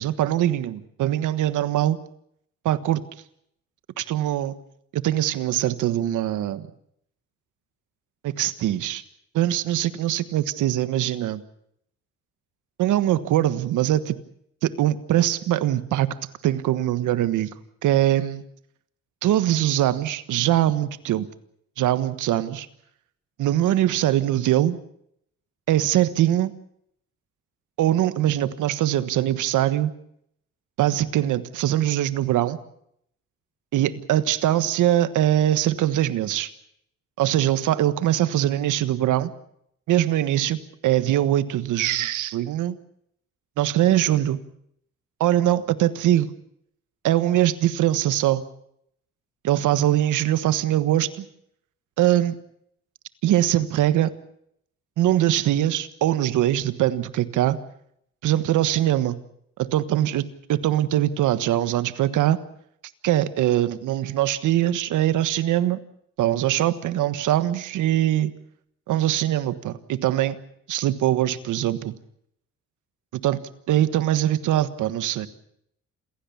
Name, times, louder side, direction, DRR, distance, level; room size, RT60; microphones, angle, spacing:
voice 1, 0.0-2.0 2.6-3.0 4.0-4.6 4.9-6.7 8.2-9.0 9.3-11.4 12.8-14.2 14.6-16.1 16.4-17.5 17.8-18.4 19.2-21.3 21.8-22.7 23.4-24.8 25.7-26.6 27.8-29.9 30.8-32.6 33.7-36.5 37.2-39.3 39.9-42.8 43.6-44.4 45.2-46.3 47.0-48.4 49.4-51.2 52.0-52.4 53.2-54.1 55.0-57.6 58.2-59.2 59.6-62.4 63.0-65.8 66.2-68.3 68.9-70.4 70.7-71.9 73.1-75.3, right 13 dB, 85° right, 14 dB, 1.4 m, -22 dB
27.5 x 16.5 x 7.1 m, 0.71 s
cardioid pair, 90°, 30 cm